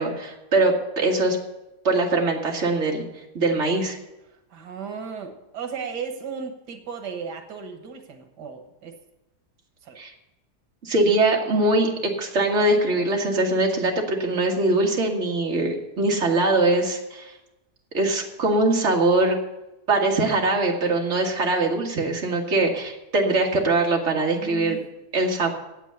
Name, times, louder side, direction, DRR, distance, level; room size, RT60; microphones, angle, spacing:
voice 1, 0.0-1.4 1.8-3.1 3.3-4.0 10.0-10.1 10.8-17.3 17.9-19.4 19.9-24.8 25.1-25.5, right 2 dB, 45° right, 0 dB, 2.1 m, -22 dB
voice 2, 4.5-9.0 9.8-10.0 24.4-24.8, right 6 dB, 90° right, 5 dB, 1.8 m, -35 dB
9.2 x 8.2 x 9.2 m, 0.97 s
omnidirectional pair, 1.7 m